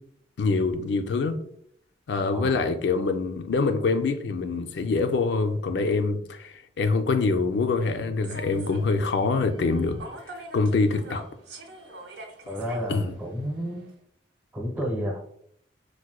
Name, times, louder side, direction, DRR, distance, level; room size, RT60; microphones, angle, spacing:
voice 1, 0.4-1.4 2.1-10.0 10.5-11.2 12.9-13.1, left 4 dB, 70° left, 7 dB, 0.4 m, -25 dB
voice 2, 2.3-2.7 12.5-13.8 14.5-15.3, equal, 10° right, -2 dB, 0.8 m, -31 dB
Human voice / Subway metro underground, 8.2-13.9, right 2 dB, 70° right, 0.6 m, -45 dB
4.6 x 2.1 x 2.3 m, 0.68 s
head